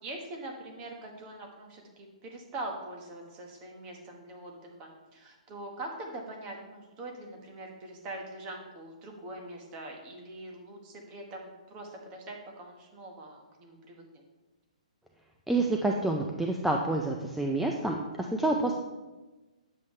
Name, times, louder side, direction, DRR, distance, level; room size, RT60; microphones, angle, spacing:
voice 1, 0.0-14.2, right 2 dB, 25° right, 1 dB, 1.4 m, -43 dB
voice 2, 15.5-18.7, right 2 dB, 5° right, 1 dB, 0.4 m, -28 dB
9.2 x 7.4 x 3.2 m, 1.2 s
hypercardioid pair, 155°, 4 cm